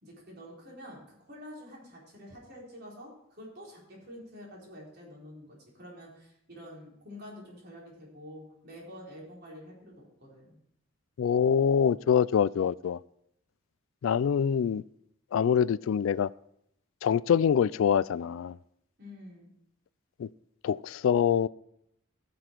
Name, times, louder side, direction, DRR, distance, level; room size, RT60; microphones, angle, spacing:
voice 1, 0.0-10.6 19.0-19.5, equal, 50° right, 4.1 m, -48 dB
voice 2, 11.2-13.0 14.0-14.8 15.3-16.3 17.0-18.6 20.2-20.3 20.6-21.5, left 7 dB, 75° left, 0.3 m, -25 dB
15.0 x 6.9 x 4.5 m
head